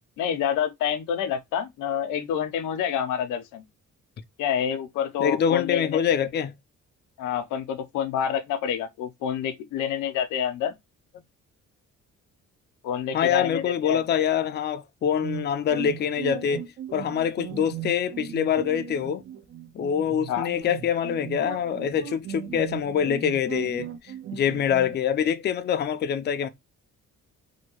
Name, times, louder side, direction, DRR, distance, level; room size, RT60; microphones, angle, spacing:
voice 1, 0.2-3.6 4.4-6.0 7.2-10.7 12.8-14.0 20.3-20.5, left 8 dB, 90° left, 0.6 m, -28 dB
voice 2, 5.2-6.5 13.1-19.2 19.7-26.5, left 8 dB, 35° left, 0.4 m, -25 dB
sound 1, 15.2-25.0, right 11 dB, 45° right, 0.5 m, -37 dB
2.7 x 2.2 x 2.9 m
cardioid pair, 90°, 30 cm